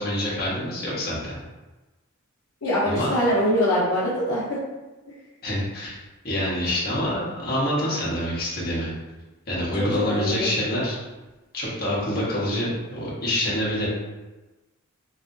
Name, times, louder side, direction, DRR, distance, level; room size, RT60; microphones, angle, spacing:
voice 1, 0.0-1.3 2.8-3.1 5.4-6.0 6.2-8.9 9.5-11.0 11.5-13.9, left 1 dB, 45° left, -6 dB, 1.1 m, -26 dB
voice 2, 2.6-4.6 9.8-10.5, equal, 70° left, -8 dB, 0.8 m, -23 dB
3.2 x 2.8 x 2.6 m, 1.1 s
head